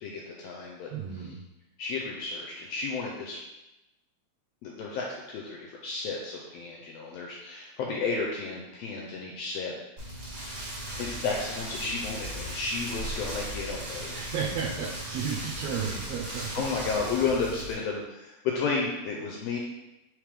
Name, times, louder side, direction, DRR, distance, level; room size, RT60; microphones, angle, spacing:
voice 1, 0.0-0.9 1.2-1.3 1.8-3.4 4.6-9.7 10.0-10.6 11.0-14.3 16.5-19.6, left 4 dB, 80° left, -2 dB, 1.5 m, -32 dB
voice 2, 0.9-1.4 14.1-16.6, right 6 dB, 75° right, -3 dB, 1.5 m, -33 dB
Rain, 10.0-17.7, right 1 dB, 55° right, 1.1 m, -37 dB
5.0 x 3.1 x 3.4 m, 0.95 s
omnidirectional pair, 3.4 m